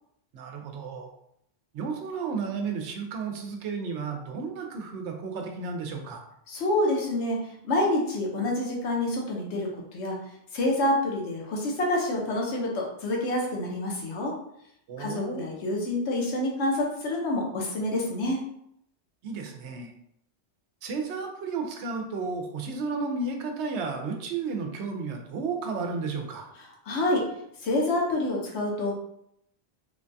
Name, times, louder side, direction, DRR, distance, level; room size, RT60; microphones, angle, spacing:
voice 1, 0.3-1.1 1.7-6.2 14.9-15.4 19.2-19.9 20.8-26.5, right 4 dB, 85° right, 3 dB, 0.9 m, -33 dB
voice 2, 6.5-10.2 10.5-14.3 15.0-18.4 26.8-27.2 27.6-29.0, left 1 dB, 80° left, -1 dB, 1.0 m, -27 dB
3.2 x 2.2 x 2.6 m, 0.74 s
omnidirectional pair, 1.1 m